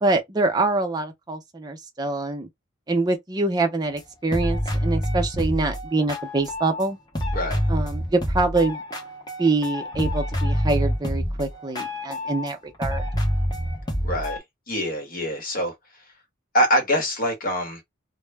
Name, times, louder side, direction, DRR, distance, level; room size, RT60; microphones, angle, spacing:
voice 1, 0.0-2.5 2.9-7.0 7.7-8.8 9.4-13.0, right 3 dB, 20° right, 0.5 m, -25 dB
sound 1, 4.0-4.1 4.3-6.9 7.2-12.5 12.8-14.4, equal, 20° left, 0.7 m, -27 dB
voice 2, 14.0-14.4 14.7-15.7 16.5-17.8, equal, 45° left, 0.9 m, -24 dB
2.1 x 2.1 x 3.3 m
head